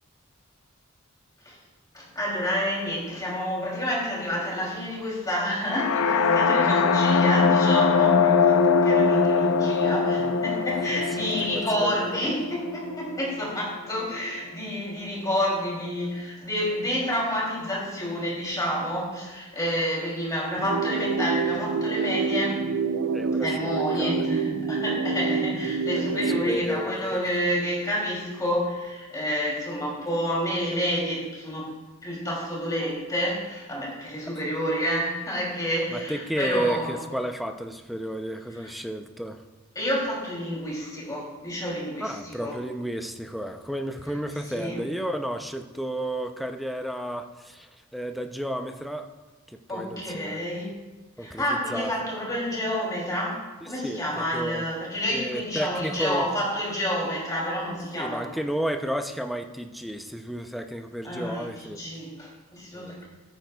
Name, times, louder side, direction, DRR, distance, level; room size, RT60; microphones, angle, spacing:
voice 1, 1.9-22.6 23.4-31.7 32.0-37.0 38.5-38.7 39.7-42.6 44.4-44.8 49.7-50.7 51.2-53.4 53.7-58.4 61.0-63.1, equal, 15° left, -4 dB, 2.7 m, -29 dB
sound 1, 5.7-13.6, left 5 dB, 85° left, 0.5 m, -22 dB
voice 2, 10.9-12.3 23.1-24.1 26.1-26.2 26.5-27.2 35.9-39.4 42.0-49.1 49.5-50.4 51.2-51.9 53.8-54.7 55.1-56.3 57.9-61.8 62.7-63.0, right 1 dB, ahead, 6 dB, 0.4 m, -32 dB
sound 2, 20.6-26.6, right 5 dB, 85° right, 0.5 m, -27 dB
13.5 x 9.1 x 2.2 m, 1.2 s
head